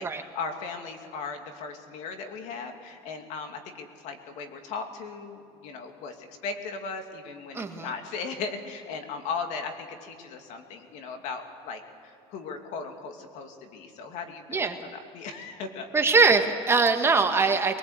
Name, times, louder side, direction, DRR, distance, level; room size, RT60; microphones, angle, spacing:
voice 1, 0.0-15.9, left 5 dB, 65° left, 5 dB, 2.6 m, -37 dB
voice 2, 7.5-7.9 14.5-14.8 15.9-17.8, right 4 dB, 20° right, 5 dB, 1.6 m, -22 dB
22.5 x 19.5 x 8.2 m, 2.7 s
cardioid pair, 120°, 13 cm